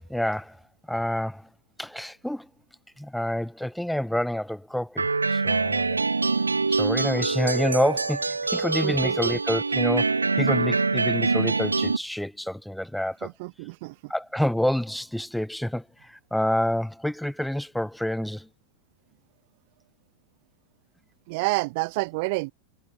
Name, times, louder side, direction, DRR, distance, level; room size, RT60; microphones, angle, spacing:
voice 1, 0.1-0.6 0.9-1.5 1.8-2.5 3.0-6.0 6.7-13.3 14.1-18.5, left 1 dB, ahead, 1.3 m, -28 dB
sound 1, 5.0-12.0, right 4 dB, 80° right, 3.3 m, -24 dB
voice 2, 8.8-9.4 13.2-14.1 21.3-22.5, right 26 dB, 50° right, 1.1 m, -29 dB
figure-of-eight pair, 90°, 0 cm